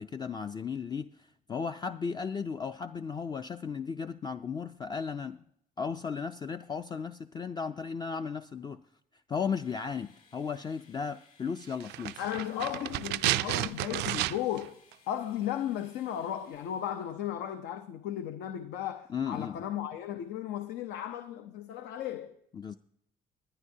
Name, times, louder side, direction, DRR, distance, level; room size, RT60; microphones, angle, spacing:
voice 1, 0.0-5.4 5.8-8.8 9.3-12.2 19.1-19.6 22.5-22.8, left 6 dB, 25° left, 0.3 m, -35 dB
sound 1, 9.6-17.4, left 5 dB, 55° left, 3.6 m, -63 dB
sound 2, 11.8-14.7 14.9-15.0, right 16 dB, 80° right, 0.4 m, -31 dB
voice 2, 12.2-14.8 15.1-22.4, left 11 dB, 80° left, 0.7 m, -35 dB
19.5 x 10.5 x 2.7 m
cardioid pair, 110°, 17 cm